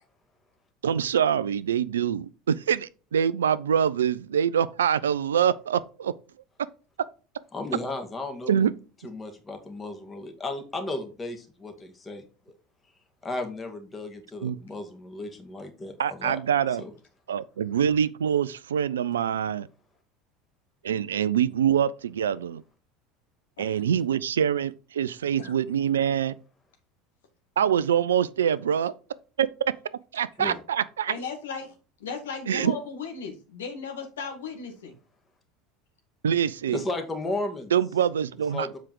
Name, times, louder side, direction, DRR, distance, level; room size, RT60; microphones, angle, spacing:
voice 1, 0.8-6.1 8.5-8.7 14.4-14.6 16.0-16.8 17.3-19.7 20.8-22.6 23.6-26.4 27.6-28.9 29.4-29.5 30.1-31.1 32.5-32.7 36.2-36.8 37.7-38.7, right 8 dB, 75° right, 0.4 m, -25 dB
voice 2, 7.5-8.7 9.0-12.6 13.2-16.4 16.8-16.9 30.4-30.6 36.7-37.7 38.5-38.8, left 2 dB, 20° left, 2.1 m, -34 dB
voice 3, 25.4-25.7 31.1-31.7 32.0-35.0 36.8-37.0 38.5-38.6, left 5 dB, 75° left, 2.0 m, -37 dB
7.5 x 5.1 x 4.6 m
figure-of-eight pair, 75°, 0 cm